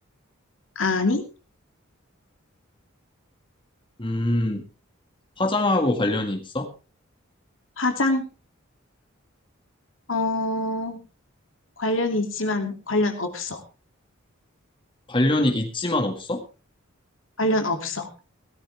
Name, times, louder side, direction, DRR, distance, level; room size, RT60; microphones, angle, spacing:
voice 1, 0.8-1.2 7.8-8.3 10.1-11.0 11.8-13.6 17.4-18.1, left 2 dB, 65° left, 5 dB, 2.6 m, -24 dB
voice 2, 4.0-4.6 5.4-6.7 15.1-16.4, left 1 dB, 25° left, 4 dB, 1.9 m, -23 dB
17.5 x 13.0 x 3.4 m, 0.31 s
head